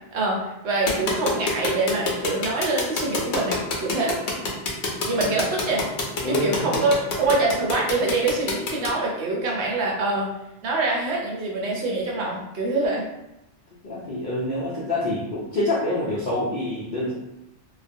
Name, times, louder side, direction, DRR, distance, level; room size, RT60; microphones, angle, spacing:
voice 1, 0.1-4.2 5.1-5.8 6.3-10.3 10.6-13.0, right 2 dB, 70° right, -2 dB, 0.9 m, -25 dB
sound 1, 0.9-8.9, left 3 dB, 75° left, 0.9 m, -26 dB
voice 2, 5.2-5.7 6.2-6.7 13.8-17.1, left 1 dB, 60° left, -6 dB, 0.5 m, -27 dB
2.4 x 2.1 x 2.5 m, 0.89 s
omnidirectional pair, 1.2 m